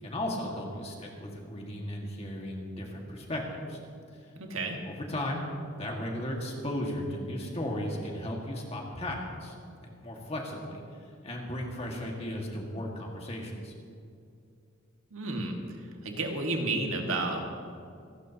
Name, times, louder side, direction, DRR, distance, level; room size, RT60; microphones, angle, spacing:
voice 1, 0.0-3.4 3.7-3.8 4.2-4.3 4.9-5.4 5.8-9.5 9.8-10.8 11.2-13.7, left 1 dB, 30° left, -1 dB, 1.9 m, -35 dB
voice 2, 4.4-4.8 15.1-15.6 16.0-17.5, right 2 dB, 85° right, 2 dB, 1.8 m, -31 dB
27.5 x 11.5 x 2.9 m, 2.5 s
head